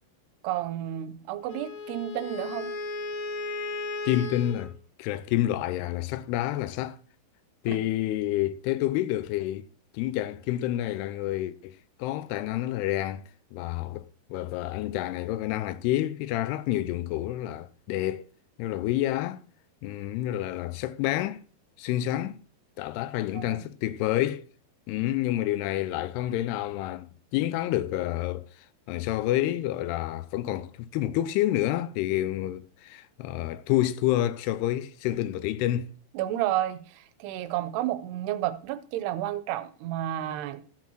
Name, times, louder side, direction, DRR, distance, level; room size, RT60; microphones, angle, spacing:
voice 1, 0.4-2.7 7.7-7.8 23.3-23.6 36.1-40.6, right 13 dB, 85° right, 2.8 m, -31 dB
Wind instrument woodwind instrument, 1.5-4.7, left 3 dB, 65° left, 2.6 m, -35 dB
voice 2, 4.1-7.0 7.6-9.7 9.9-13.2 13.5-18.3 18.6-19.4 19.8-21.4 21.8-22.4 22.8-24.5 24.9-28.5 28.9-35.9, left 14 dB, 85° left, 2.6 m, -28 dB
14.0 x 7.3 x 3.0 m
omnidirectional pair, 4.7 m